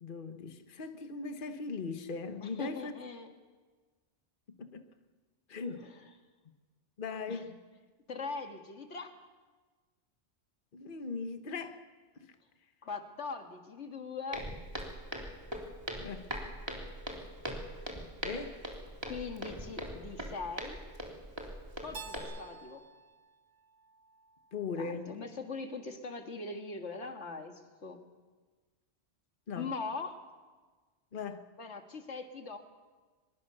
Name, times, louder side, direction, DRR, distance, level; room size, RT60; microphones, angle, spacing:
voice 1, 0.0-2.9 4.5-4.8 5.5-5.9 7.0-7.6 10.7-11.8 12.2-12.3 16.0-16.3 18.2-18.6 24.5-25.1 29.5-29.7 31.1-31.5, left 4 dB, 50° left, 8 dB, 1.3 m, -39 dB
voice 2, 2.4-3.3 5.6-6.1 7.3-7.4 8.1-9.2 12.8-14.5 19.0-20.8 21.8-22.8 24.7-28.0 29.6-30.2 31.6-32.6, left 4 dB, 90° left, 6 dB, 2.1 m, -41 dB
Walk footsteps, 14.3-22.2, equal, 25° right, 3.4 m, -41 dB
Keyboard (musical), 21.9-24.8, right 4 dB, 80° right, 1.6 m, -50 dB
24.0 x 22.0 x 6.8 m, 1.4 s
omnidirectional pair, 1.1 m